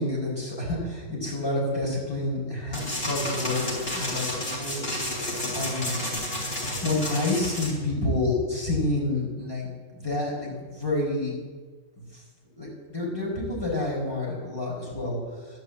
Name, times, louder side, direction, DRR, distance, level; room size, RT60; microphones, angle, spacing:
voice 1, 0.0-5.2 5.5-6.0 6.8-11.4 12.0-12.2 12.6-15.6, left 2 dB, 20° left, -4 dB, 5.0 m, -29 dB
sound 1, 2.7-7.7, left 1 dB, 50° left, 3.9 m, -31 dB
11.5 x 10.0 x 8.3 m, 1.4 s
omnidirectional pair, 1.3 m